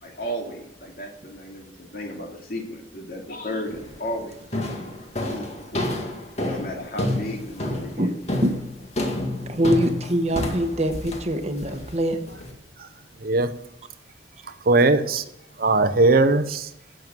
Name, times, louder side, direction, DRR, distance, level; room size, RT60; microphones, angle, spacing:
voice 1, 0.0-5.9 6.4-8.1, equal, 55° left, 1 dB, 2.6 m, -34 dB
sound 1, 3.7-4.0 4.5-12.5, left 1 dB, 40° left, 2.0 m, -29 dB
voice 2, 9.4-12.2, equal, 40° right, 7 dB, 1.2 m, -23 dB
voice 3, 13.2-13.5 14.6-15.2 15.6-16.7, right 2 dB, 55° right, 11 dB, 0.8 m, -19 dB
11.0 x 7.7 x 7.5 m, 0.78 s
head